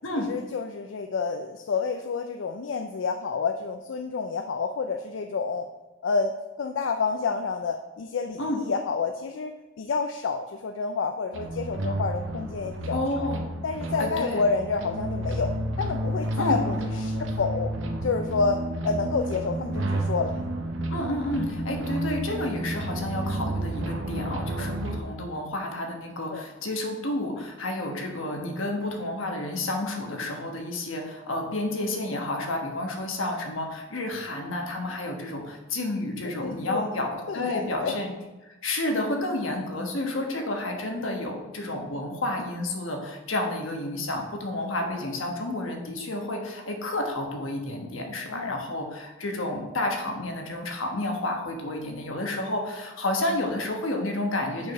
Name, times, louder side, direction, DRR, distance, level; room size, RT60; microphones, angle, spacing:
voice 1, 0.3-5.7 6.0-6.3 6.6-13.0 13.6-17.7 18.0-20.4 26.3-26.4 32.1-32.2 36.4-38.0 44.6-44.9 48.3-48.7, left 4 dB, 70° left, 6 dB, 0.4 m, -29 dB
sound 1, 11.3-25.0, right 1 dB, 75° right, 0.8 m, -31 dB
voice 2, 12.9-13.5 14.0-14.5 16.4-16.6 20.9-37.1 37.3-38.1 38.4-54.7, left 1 dB, 85° left, 2 dB, 1.2 m, -30 dB
5.5 x 4.8 x 5.3 m, 1.1 s
head